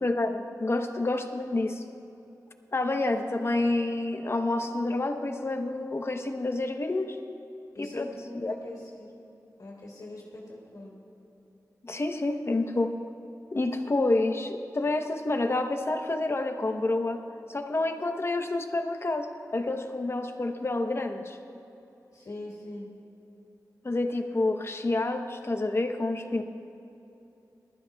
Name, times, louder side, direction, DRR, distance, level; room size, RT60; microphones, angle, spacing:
voice 1, 0.0-1.8 2.7-7.2 7.8-8.1 8.3-8.5 11.8-13.0 13.5-17.2 17.5-21.4 23.8-26.4, left 2 dB, 40° left, 5 dB, 0.9 m, -28 dB
voice 2, 7.7-9.1 9.6-11.0 22.1-22.9, left 1 dB, 70° left, -4 dB, 2.6 m, -42 dB
20.5 x 13.0 x 2.3 m, 3.0 s
wide cardioid pair, 85°, 7 cm